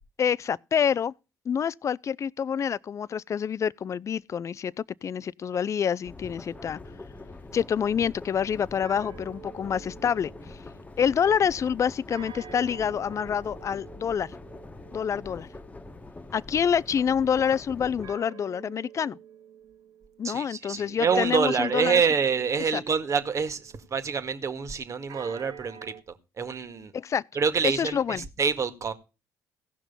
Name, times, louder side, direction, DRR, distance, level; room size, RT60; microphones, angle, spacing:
voice 1, 0.2-1.1 1.5-6.8 7.5-10.3 11.0-14.3 14.9-15.5 16.3-19.2 20.2-22.0 22.7-22.8 26.9-27.2 27.6-28.2, left 7 dB, 45° left, 0.5 m, -27 dB
sound 1, 6.0-18.1, left 3 dB, 20° left, 1.4 m, -44 dB
sound 2, 6.4-11.3 12.1-17.0 18.0-20.4 21.5-24.0 25.1-26.0, right 8 dB, 70° right, 1.9 m, -49 dB
voice 2, 20.2-26.9 27.3-28.9, right 6 dB, 45° right, 1.9 m, -27 dB
16.0 x 6.1 x 5.5 m
supercardioid pair, 65°, 7 cm